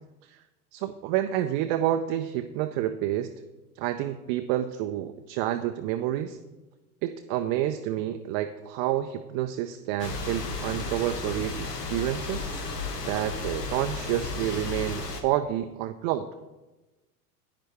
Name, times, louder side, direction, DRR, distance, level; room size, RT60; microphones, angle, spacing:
voice 1, 0.7-3.3 3.8-6.4 7.0-12.5 13.0-16.3, right 12 dB, 35° right, 8 dB, 0.4 m, -29 dB
sound 1, 10.0-15.2, left 3 dB, 85° left, 1.3 m, -34 dB
10.5 x 9.4 x 3.4 m, 1.1 s
figure-of-eight pair, 85°, 47 cm